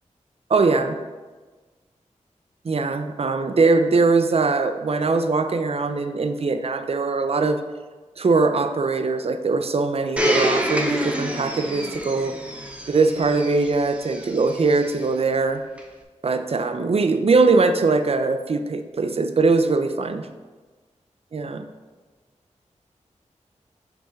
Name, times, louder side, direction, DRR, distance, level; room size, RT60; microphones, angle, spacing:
voice 1, 0.5-1.0 2.6-7.6 8.2-12.3 12.9-15.6 16.2-20.3 21.3-21.6, right 3 dB, 50° right, 8 dB, 0.5 m, -21 dB
Domestic sounds home sounds, 10.2-15.0 15.8-15.9, equal, 10° right, 0.8 m, -27 dB
5.9 x 3.5 x 5.6 m, 1.3 s
wide cardioid pair, 65°, 13 cm